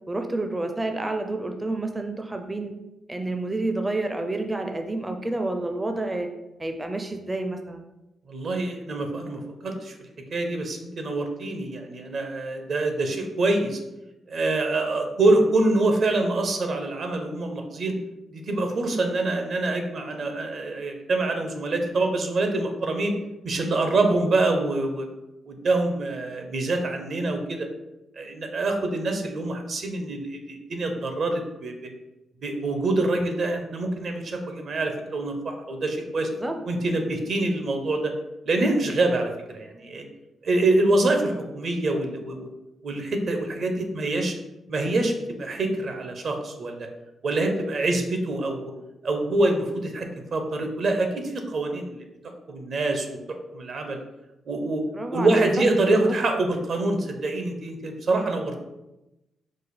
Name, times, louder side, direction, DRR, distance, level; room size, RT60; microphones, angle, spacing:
voice 1, 0.1-2.7 3.1-6.3 6.6-7.8 36.4-36.5 54.9-55.4 55.8-56.1, right 2 dB, 20° right, 5 dB, 0.5 m, -29 dB
voice 2, 8.3-9.9 10.3-13.8 14.3-18.0 18.3-23.1 23.4-25.1 25.5-27.7 28.2-31.7 32.4-36.3 36.7-38.1 38.4-40.0 40.4-42.5 42.8-44.3 44.7-45.1 45.4-46.9 47.2-48.7 49.0-52.0 52.5-54.0 54.5-54.8 55.1-58.6, right 2 dB, 60° right, 4 dB, 0.7 m, -25 dB
4.9 x 2.1 x 4.1 m, 0.96 s
cardioid pair, 75°, 0 cm